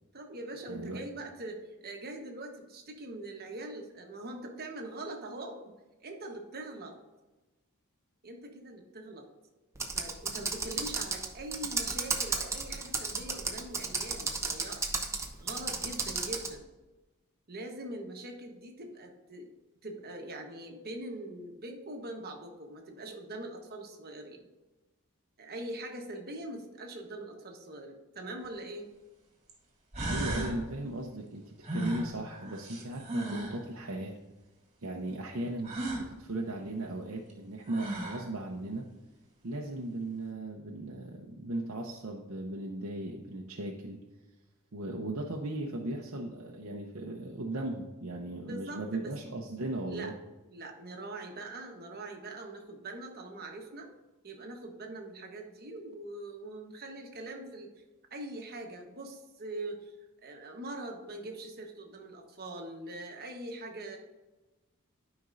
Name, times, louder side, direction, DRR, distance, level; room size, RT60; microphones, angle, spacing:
voice 1, 0.1-5.7 6.0-7.0 8.2-9.2 9.8-14.9 15.4-16.6 17.5-19.5 19.8-24.5 25.4-28.9 48.4-49.1 49.9-50.1 50.5-53.9 54.2-57.7 58.1-59.9 60.2-64.0, right 2 dB, 45° right, 3 dB, 1.2 m, -42 dB
voice 2, 0.7-1.0 30.1-34.1 34.8-38.8 39.4-44.0 44.7-50.1, right 1 dB, 65° right, -1 dB, 0.8 m, -37 dB
Computer keyboard, 9.8-16.5, right 4 dB, 15° right, 0.7 m, -34 dB
sound 1, 28.4-28.5 29.5-29.6 29.9-30.6 31.6-33.6 35.6-36.1 37.3-37.4 37.7-38.3, right 2 dB, 30° right, 2.0 m, -35 dB
12.5 x 5.2 x 2.6 m, 1.1 s
head